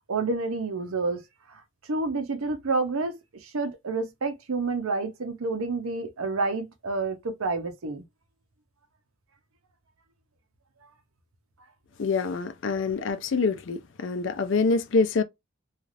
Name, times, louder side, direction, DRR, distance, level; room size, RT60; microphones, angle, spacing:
voice 1, 0.1-1.2 1.9-8.0, right 3 dB, 90° right, 0.7 m, -29 dB
voice 2, 12.0-15.2, left 4 dB, 60° left, 0.5 m, -25 dB
3.2 x 2.4 x 2.5 m
head